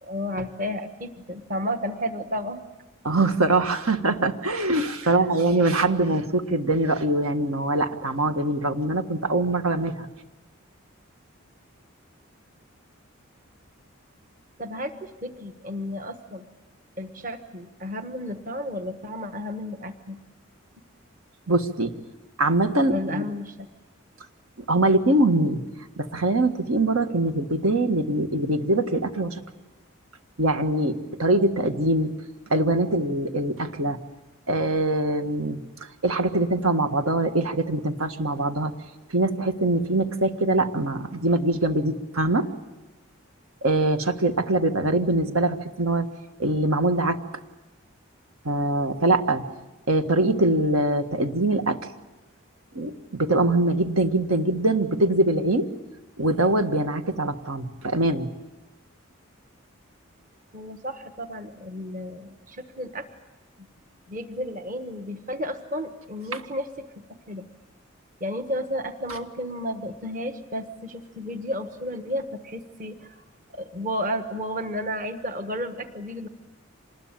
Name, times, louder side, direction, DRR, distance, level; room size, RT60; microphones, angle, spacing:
voice 1, 0.0-2.6 5.0-5.3 14.6-16.4 17.0-20.2 22.9-23.7 60.5-63.1 64.1-66.7 67.3-67.5 68.2-73.2 73.5-76.3, equal, 35° right, 8 dB, 1.3 m, -32 dB
voice 2, 3.0-10.1 21.5-21.9 22.4-23.2 24.7-25.6 26.0-29.4 30.4-32.1 32.5-34.0 34.5-35.6 36.0-38.7 39.1-42.5 43.6-46.1 46.4-47.2 48.4-49.4 49.9-51.8 52.7-55.7 56.2-58.3 66.3-66.4, right 2 dB, 80° right, 7 dB, 1.7 m, -23 dB
26.0 x 20.5 x 8.9 m, 1.1 s
head